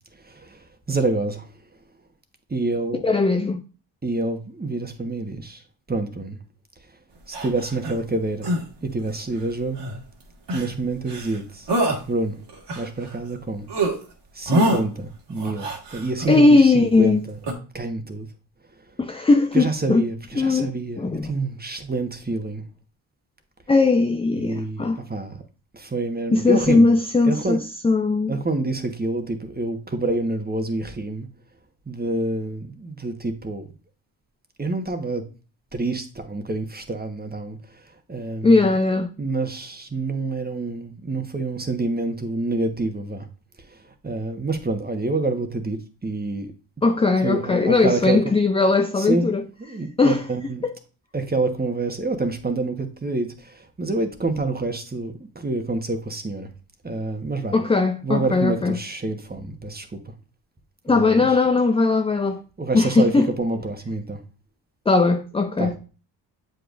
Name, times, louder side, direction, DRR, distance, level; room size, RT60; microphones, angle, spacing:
voice 1, 0.3-1.5 2.5-3.0 4.0-5.6 5.9-6.4 7.3-8.5 8.8-9.8 10.5-11.7 12.1-12.4 12.7-13.6 14.3-17.4 17.7-18.3 19.5-22.6 24.4-25.4 25.7-26.9 27.3-27.6 28.3-31.3 31.9-33.7 34.6-35.2 35.7-37.6 38.1-38.6 39.2-43.3 43.7-43.8 44.0-46.5 47.2-48.2 49.0-49.2 49.6-50.6 51.1-56.5 56.8-57.5 58.0-60.0 60.9-61.2 62.6-63.1 63.4-64.2 65.6-65.8, right 2 dB, 20° right, 1.3 m, -27 dB
voice 2, 3.0-3.6 16.3-17.2 19.0-20.1 20.4-21.3 23.7-25.0 26.3-28.4 38.4-39.1 46.8-49.4 50.0-50.2 50.6-50.7 57.5-58.8 60.9-62.4 62.7-63.3 64.9-65.8, left 3 dB, 15° left, 0.4 m, -19 dB
sound 1, 7.3-8.0 8.4-8.6 9.8-10.0 10.5-10.8 11.1-11.4 11.7-12.0 12.5-13.4 13.7-13.9 14.5-14.8 15.4-16.3 17.4-17.5, right 1 dB, 55° right, 2.0 m, -25 dB
7.6 x 5.2 x 2.6 m
supercardioid pair, 50°, 47 cm